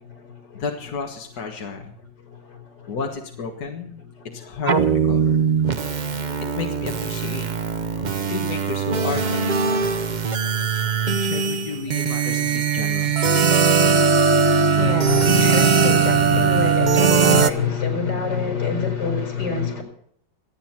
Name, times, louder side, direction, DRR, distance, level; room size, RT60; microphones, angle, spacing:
voice 1, 0.0-0.6 1.7-3.0 4.0-4.9 5.2-6.7 7.4-8.4 9.7-12.4 12.8-19.8, left 6 dB, 90° left, 5.2 m, -29 dB
voice 2, 0.6-1.9 2.9-4.1 4.3-5.4 6.6-7.5 8.3-9.9 11.1-13.2, left 5 dB, 60° left, 2.1 m, -32 dB
sound 1, 4.7-17.5, right 6 dB, 70° right, 0.4 m, -20 dB
26.5 x 9.3 x 4.4 m
omnidirectional pair, 1.9 m